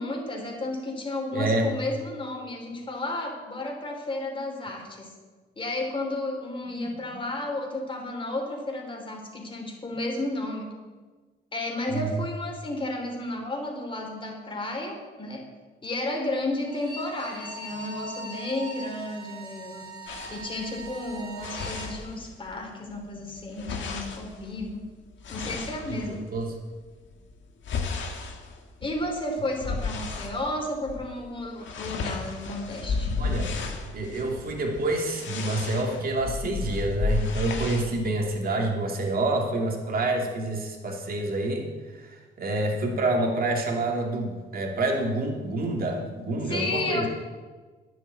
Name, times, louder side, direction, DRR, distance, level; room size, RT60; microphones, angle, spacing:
voice 1, 0.0-5.1 5.6-10.7 11.5-15.4 15.8-19.8 20.3-24.8 25.3-26.2 28.8-33.1 46.4-47.1, left 2 dB, 25° left, 1 dB, 3.3 m, -32 dB
voice 2, 1.3-1.7 6.7-7.2 11.9-12.2 26.1-26.5 33.2-33.5 33.9-47.1, right 2 dB, 50° right, 0 dB, 2.6 m, -28 dB
Bowed string instrument, 16.6-21.9, right 2 dB, 20° right, 2.8 m, -41 dB
sound 1, 20.1-22.6 22.9-26.5 27.0-30.4 30.8-31.1 31.3-37.9, left 4 dB, 70° left, 1.8 m, -33 dB
10.0 x 7.4 x 8.4 m, 1.4 s
cardioid pair, 90°, 20 cm